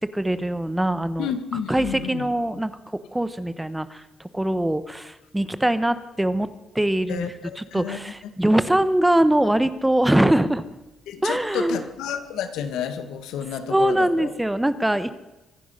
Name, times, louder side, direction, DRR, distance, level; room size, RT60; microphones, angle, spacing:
voice 1, 0.0-1.3 1.7-6.5 6.7-10.6 11.2-11.8 13.7-15.1, right 1 dB, 10° right, 13 dB, 1.1 m, -22 dB
voice 2, 1.2-2.2 7.1-7.3 7.7-8.0 11.1-14.3, left 8 dB, 85° left, 9 dB, 1.8 m, -30 dB
24.0 x 10.0 x 5.7 m, 1.0 s
cardioid pair, 90°, 0 cm